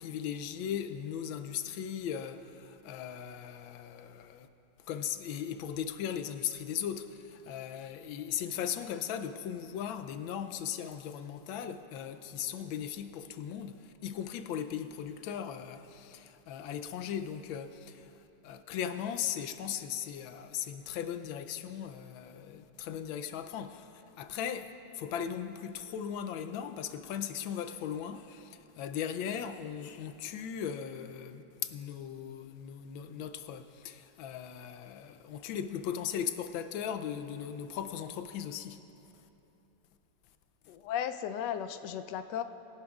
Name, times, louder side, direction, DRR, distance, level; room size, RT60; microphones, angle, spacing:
voice 1, 0.0-4.5 4.9-18.1 18.4-38.8 40.6-40.7, left 9 dB, 90° left, 1.4 m, -38 dB
voice 2, 40.7-42.4, left 9 dB, 75° left, 1.1 m, -35 dB
21.5 x 11.5 x 2.4 m
omnidirectional pair, 2.1 m